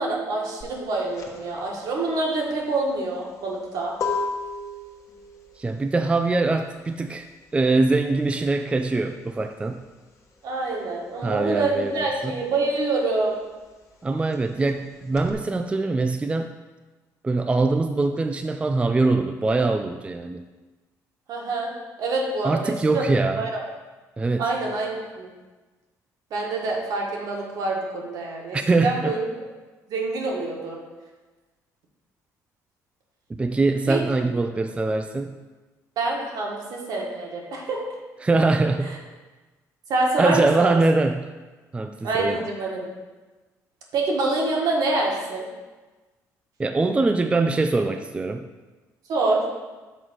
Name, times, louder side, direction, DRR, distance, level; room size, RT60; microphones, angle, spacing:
voice 1, 0.0-3.9 10.4-13.4 21.3-21.7 22.0-23.0 23.4-23.6 24.4-25.3 26.3-28.6 28.8-29.2 29.9-30.8 33.9-34.0 36.0-37.8 38.8-38.9 39.9-40.8 42.0-42.9 43.9-45.5 49.1-49.4, right 2 dB, 70° right, -1 dB, 1.6 m, -26 dB
sound 1, 0.6-10.8 11.1-15.3, left 4 dB, 50° left, 1.2 m, -35 dB
voice 2, 5.6-7.3 7.5-9.8 11.2-12.3 14.0-16.5 17.2-20.4 22.4-23.4 24.2-24.5 28.5-29.2 33.3-35.4 38.2-39.0 40.2-41.3 41.7-42.4 46.6-48.5, right 3 dB, 15° right, 7 dB, 0.4 m, -23 dB
6.1 x 3.9 x 6.2 m, 1.2 s
cardioid pair, 90°, 7 cm